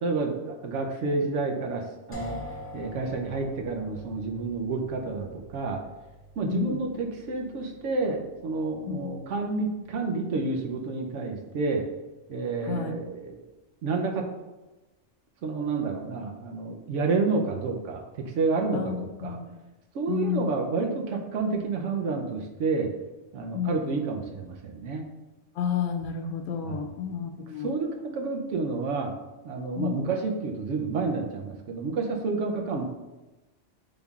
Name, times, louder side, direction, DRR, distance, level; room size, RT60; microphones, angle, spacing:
voice 1, 0.0-1.8 2.1-2.4 2.7-5.8 6.4-11.8 12.3-13.4 13.8-14.2 15.4-19.3 19.9-22.9 23.3-25.1 26.6-26.8 27.6-29.1 29.4-32.9, right 4 dB, 75° right, 2 dB, 1.0 m, -29 dB
sound 1, 2.1-11.9, equal, 20° left, 0.4 m, -46 dB
voice 2, 6.4-6.8 8.9-9.1 12.6-12.9 18.7-19.5 20.1-20.5 23.5-23.9 25.6-27.7 29.7-30.1, left 8 dB, 85° left, 4 dB, 0.9 m, -31 dB
5.2 x 3.6 x 2.3 m, 1.1 s
omnidirectional pair, 1.2 m